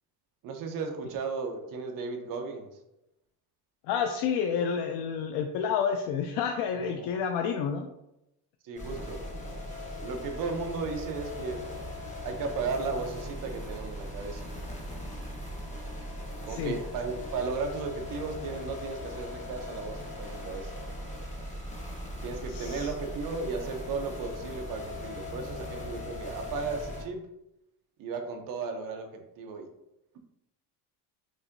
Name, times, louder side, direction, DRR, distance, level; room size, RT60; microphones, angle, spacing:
voice 1, 0.4-2.7 6.8-7.1 8.6-9.2 10.0-11.6 12.2-14.7 16.5-20.7 22.2-27.2 28.0-29.7, right 4 dB, 50° right, 4 dB, 0.7 m, -35 dB
voice 2, 3.9-7.9 16.5-16.8 22.5-22.9, left 7 dB, 70° left, 4 dB, 0.5 m, -29 dB
sound 1, 8.8-27.0, left 1 dB, 15° left, 0.9 m, -39 dB
6.0 x 2.6 x 2.6 m, 0.87 s
cardioid pair, 165°, 43 cm